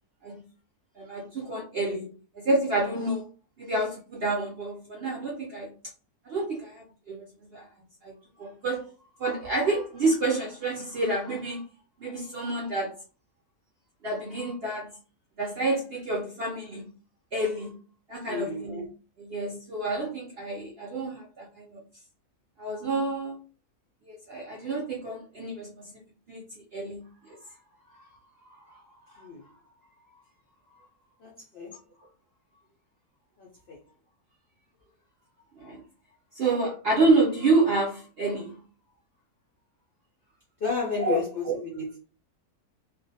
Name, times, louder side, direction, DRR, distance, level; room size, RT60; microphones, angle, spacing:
voice 1, 1.0-3.3 3.6-5.7 6.2-7.7 8.0-8.9 9.2-11.6 12.0-13.0 14.0-14.9 15.4-16.9 17.3-17.8 18.1-18.9 19.2-21.8 22.6-23.4 24.1-26.0 26.3-27.4 27.9-28.1 28.4-29.3 30.1-30.2 30.7-30.8 35.6-35.8 36.3-38.6 41.0-41.6, right 2 dB, 65° right, 0.6 m, -29 dB
voice 2, 18.3-18.7 29.2-29.5 31.2-31.7 33.4-33.8 40.6-42.0, left 5 dB, 70° left, 0.5 m, -32 dB
2.4 x 2.2 x 2.6 m
omnidirectional pair, 1.6 m